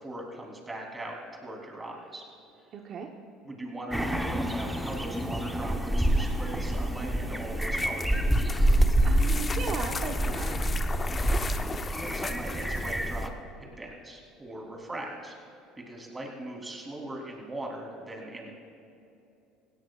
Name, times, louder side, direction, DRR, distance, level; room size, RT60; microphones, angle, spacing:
voice 1, 0.0-2.2 3.4-8.2 11.1-13.3 13.6-15.3 15.9-18.5, right 1 dB, 20° right, 0 dB, 3.5 m, -40 dB
voice 2, 2.7-3.1 9.0-10.6, right 5 dB, 50° right, 2 dB, 1.0 m, -36 dB
sound 1, 3.9-13.3, right 1 dB, 5° right, 1.0 m, -27 dB
sound 2, 7.6-13.2, left 4 dB, 30° left, 0.7 m, -37 dB
17.0 x 17.0 x 2.5 m, 2.7 s
hypercardioid pair, 80°, 0 cm